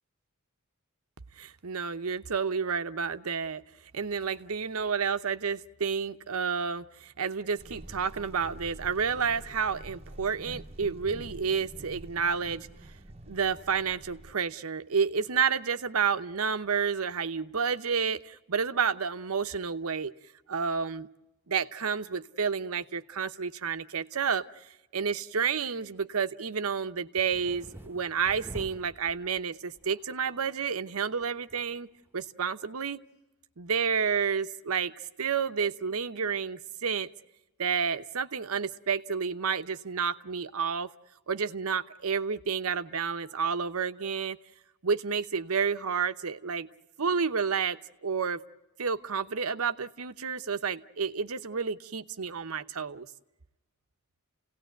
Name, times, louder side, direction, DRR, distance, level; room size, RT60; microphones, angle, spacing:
voice 1, 1.4-3.6 3.9-12.7 13.3-20.1 20.5-21.1 21.5-24.7 24.9-31.9 32.1-33.0 33.6-34.9 35.2-37.1 37.6-40.9 41.3-44.4 44.8-46.7 47.0-48.4 48.8-53.1, right 6 dB, 75° right, 11 dB, 0.9 m, -30 dB
sound 1, 7.6-14.3, right 1 dB, 30° right, 0.9 m, -47 dB
sound 2, 27.2-29.5 29.8-30.3 30.6-30.7 30.9-31.7 32.1-32.2, right 1 dB, 10° right, 1.1 m, -46 dB
30.0 x 17.5 x 9.2 m, 1.0 s
head